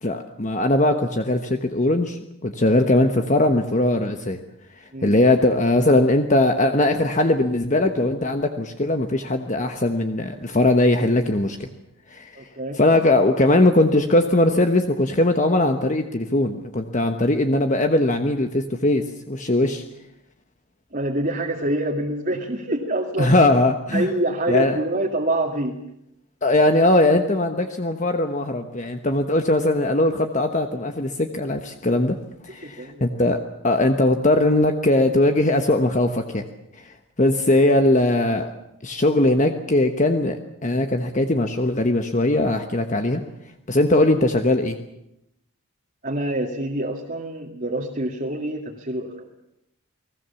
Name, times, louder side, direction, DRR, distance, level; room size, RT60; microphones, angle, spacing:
voice 1, 0.0-4.4 4.8-11.7 12.1-12.4 12.8-19.8 23.2-24.1 24.5-24.8 26.4-32.2 32.4-36.4 36.8-38.5 38.8-43.2 43.7-44.8, left 1 dB, 35° left, 6 dB, 1.2 m, -20 dB
voice 2, 12.4-12.8 20.9-23.3 23.9-25.8 32.5-33.2 46.0-49.3, right 1 dB, 35° right, 0 dB, 2.1 m, -26 dB
29.5 x 20.0 x 7.1 m, 0.83 s
head